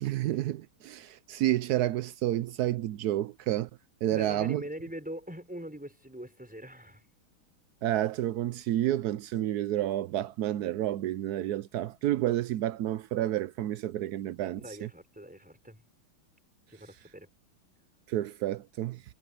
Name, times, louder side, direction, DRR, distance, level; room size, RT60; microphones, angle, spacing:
voice 1, 0.0-3.7 4.0-4.6 7.8-14.9 18.1-19.0, right 13 dB, 85° right, 0.8 m, -30 dB
voice 2, 4.1-7.0 14.4-15.8 16.7-17.3, equal, 5° right, 4.4 m, -42 dB
omnidirectional pair, 2.3 m